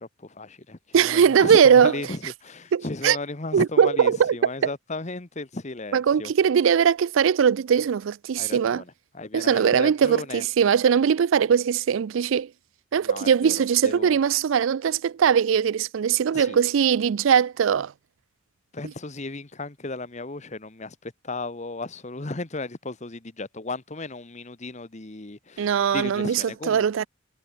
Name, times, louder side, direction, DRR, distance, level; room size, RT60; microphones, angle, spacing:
voice 1, 0.0-6.3 8.4-10.4 13.0-13.5 13.8-14.2 16.3-16.6 18.7-27.1, left 2 dB, 35° left, 1.1 m, -35 dB
voice 2, 0.9-2.0 2.7-3.2 3.5-4.7 5.9-8.8 9.3-12.5 12.9-17.9 25.6-27.1, right 7 dB, 75° right, 0.4 m, -20 dB
head